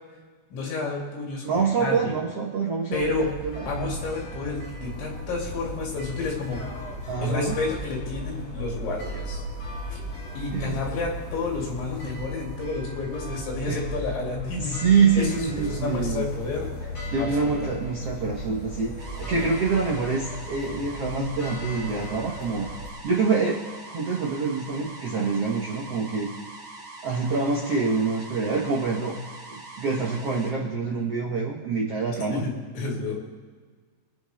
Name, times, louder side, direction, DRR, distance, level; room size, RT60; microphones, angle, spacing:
voice 1, 0.5-1.5 1.8-2.1 2.9-3.3 3.7-6.6 7.2-9.4 9.9-10.0 10.3-14.8 15.2-15.3 15.6-16.7 17.2-17.7 19.3-19.4 32.3-33.2, left 3 dB, 80° left, -2 dB, 5.0 m, -30 dB
voice 2, 1.4-3.7 7.1-7.5 10.5-10.8 13.7-13.8 14.5-16.2 17.1-22.7 23.0-23.7 23.9-26.3 27.0-29.1 29.8-32.4, right 4 dB, 90° right, -2 dB, 1.3 m, -26 dB
sound 1, 2.9-22.9, equal, 40° left, 3.1 m, -36 dB
sound 2, 19.0-30.5, right 2 dB, 30° right, 3.2 m, -43 dB
25.5 x 8.9 x 3.3 m, 1.5 s
omnidirectional pair, 5.2 m